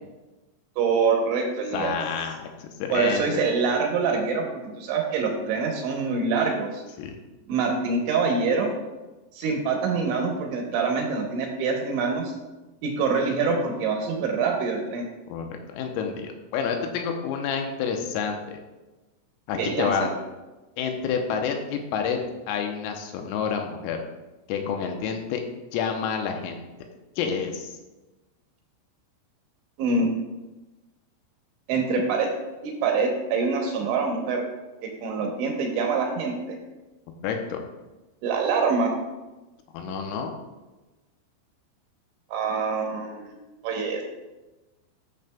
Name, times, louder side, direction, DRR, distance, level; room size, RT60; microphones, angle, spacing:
voice 1, 0.8-2.0 2.9-6.8 7.5-8.7 9.3-12.3 12.8-15.1 19.6-20.1 29.8-30.1 31.7-32.3 32.6-34.4 34.8-36.6 38.2-39.0 42.3-43.3 43.6-44.0, right 4 dB, 75° right, 1 dB, 2.9 m, -25 dB
voice 2, 1.7-3.4 7.0-7.2 15.3-18.6 19.5-20.1 20.8-22.2 22.5-24.0 24.5-25.4 25.7-26.6 27.2-27.8 37.2-37.6 39.7-40.3, left 6 dB, 85° left, 4 dB, 3.5 m, -29 dB
12.0 x 6.6 x 2.3 m, 1.1 s
omnidirectional pair, 6.0 m